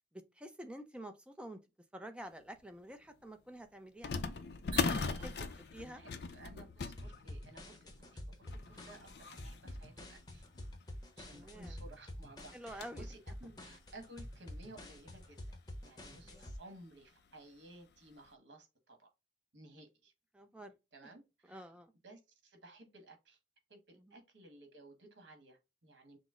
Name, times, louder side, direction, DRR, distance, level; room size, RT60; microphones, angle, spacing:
voice 1, 0.1-1.6 1.9-4.1 5.2-5.4 5.7-6.0 8.8-8.9 11.3-11.8 12.5-13.1 16.2-16.5 20.3-20.7 21.0-21.1 21.5-21.9 24.0-24.2, right 1 dB, 5° right, 0.4 m, -49 dB
sound 1, 2.6-2.7 4.0-11.0 11.5-11.6 11.9-12.0 12.4-13.1 13.6-13.7 14.6-14.7 15.0-15.2 16.5-16.8 17.2-17.3 17.9-18.1, left 4 dB, 60° left, 0.5 m, -40 dB
sound 2, 4.7-5.9, right 6 dB, 25° right, 1.1 m, -51 dB
voice 2, 5.2-10.4 11.2-15.5 15.8-19.1 19.5-20.1 20.9-21.7 22.0-23.4 23.7-26.2, right 2 dB, 70° right, 1.4 m, -56 dB
sound 3, 7.0-16.6, left 1 dB, 20° left, 0.7 m, -48 dB
6.1 x 2.0 x 3.6 m
head